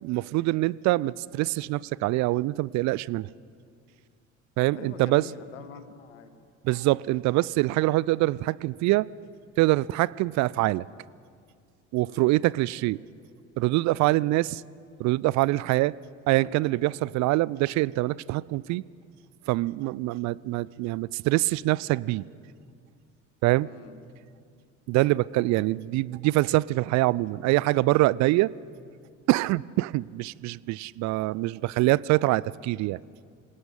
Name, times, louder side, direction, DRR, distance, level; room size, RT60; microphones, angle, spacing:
voice 1, 0.0-3.3 4.6-5.3 6.6-9.1 9.6-10.9 11.9-13.0 13.6-14.6 15.0-15.9 16.3-18.8 19.5-22.2 23.4-23.7 24.9-28.5 29.3-33.0, right 19 dB, 50° right, 22 dB, 0.5 m, -24 dB
voice 2, 4.7-6.3 12.1-12.4 23.6-24.0, left 7 dB, 80° left, 9 dB, 1.6 m, -45 dB
27.0 x 18.0 x 5.5 m, 2.2 s
figure-of-eight pair, 55°, 36 cm